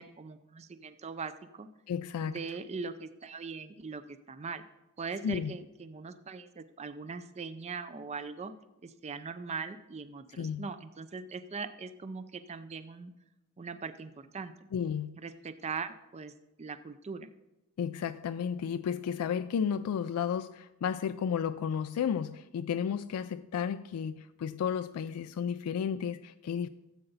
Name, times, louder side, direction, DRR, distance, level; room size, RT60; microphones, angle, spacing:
voice 1, 0.0-1.7 2.2-4.6 5.0-8.5 8.8-13.1 13.6-14.5 15.2-16.3 16.6-17.3, right 4 dB, 30° right, 11 dB, 0.4 m, -41 dB
voice 2, 1.9-2.4 5.2-5.5 10.4-10.7 14.7-15.2 17.8-26.7, left 7 dB, 85° left, 11 dB, 0.3 m, -33 dB
14.0 x 7.8 x 4.0 m, 0.95 s
head